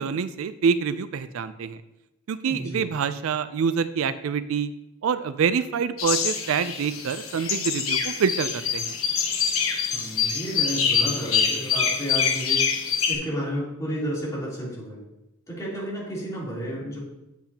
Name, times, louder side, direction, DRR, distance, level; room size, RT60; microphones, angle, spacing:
voice 1, 0.0-1.8 2.3-4.7 5.0-9.0, right 6 dB, 70° right, 13 dB, 0.4 m, -26 dB
voice 2, 2.4-3.0 9.9-12.6 13.1-15.0 15.5-17.0, equal, 15° left, -8 dB, 3.3 m, -32 dB
sound 1, 6.0-13.1, left 6 dB, 75° left, 1.1 m, -25 dB
8.4 x 8.1 x 2.8 m, 0.93 s
head